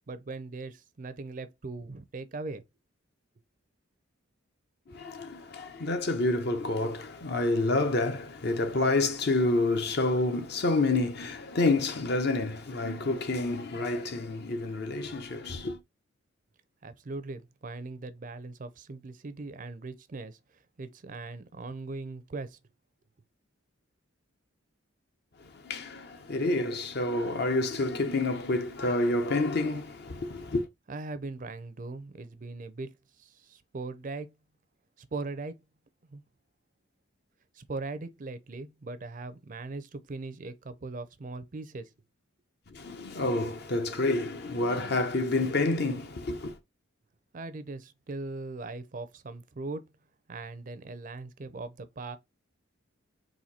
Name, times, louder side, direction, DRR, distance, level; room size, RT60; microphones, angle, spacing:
voice 1, 0.1-2.6 16.8-20.4 20.8-22.6 30.9-34.3 35.0-35.6 36.1-36.2 37.5-41.9 47.3-49.9 50.3-52.2, right 3 dB, 40° right, 0.5 m, -40 dB
voice 2, 4.9-15.8 25.4-30.7 42.7-46.6, left 2 dB, 50° left, 0.7 m, -28 dB
4.3 x 2.6 x 4.1 m
head